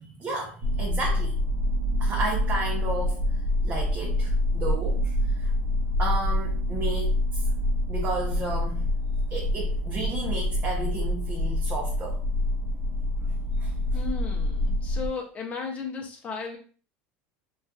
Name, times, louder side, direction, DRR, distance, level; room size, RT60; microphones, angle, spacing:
voice 1, 0.0-1.4 2.0-5.5 6.0-7.4 7.9-8.8 9.3-12.2 13.6-13.7, right 2 dB, 30° right, 0.5 m, -33 dB
sound 1, 0.6-15.1, left 1 dB, 80° right, 0.5 m, -26 dB
voice 2, 13.9-16.6, left 5 dB, 25° left, 0.5 m, -35 dB
2.6 x 2.3 x 2.3 m
supercardioid pair, 125°, 6 cm